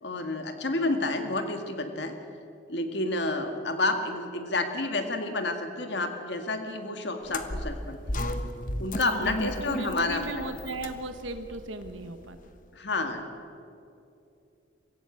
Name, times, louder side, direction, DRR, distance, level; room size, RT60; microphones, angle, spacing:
voice 1, 0.0-2.1 2.7-8.3 8.8-10.4 12.7-13.3, left 2 dB, 65° left, 6 dB, 1.8 m, -30 dB
sound 1, 7.2-12.5, left 1 dB, 45° left, 1.1 m, -35 dB
voice 2, 9.0-12.4, right 2 dB, 85° right, 8 dB, 1.3 m, -37 dB
25.0 x 16.0 x 8.5 m, 2.7 s
head